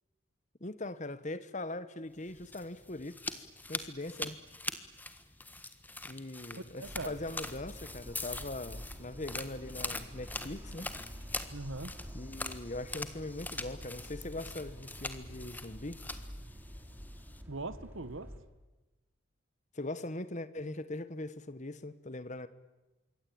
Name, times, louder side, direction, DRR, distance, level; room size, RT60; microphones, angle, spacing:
voice 1, 0.6-4.4 6.0-10.9 12.1-16.0 19.7-22.5, left 2 dB, 35° left, 1.3 m, -41 dB
sound 1, 2.2-17.4, left 2 dB, 10° left, 1.4 m, -43 dB
voice 2, 6.5-7.2 11.5-11.9 17.5-18.3, right 2 dB, 70° right, 1.5 m, -41 dB
sound 2, 6.8-18.4, equal, 10° right, 3.2 m, -48 dB
26.5 x 23.0 x 8.8 m
head